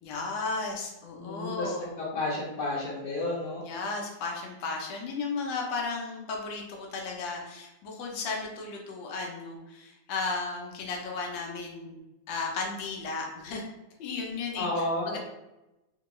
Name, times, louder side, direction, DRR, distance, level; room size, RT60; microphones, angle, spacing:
voice 1, 0.0-1.9 3.6-12.0 12.3-13.6 14.0-15.2, left 4 dB, 90° left, 0 dB, 1.4 m, -34 dB
voice 2, 1.2-3.6 14.5-15.2, left 2 dB, 70° left, -6 dB, 1.2 m, -31 dB
3.6 x 2.2 x 2.9 m, 0.96 s
omnidirectional pair, 2.0 m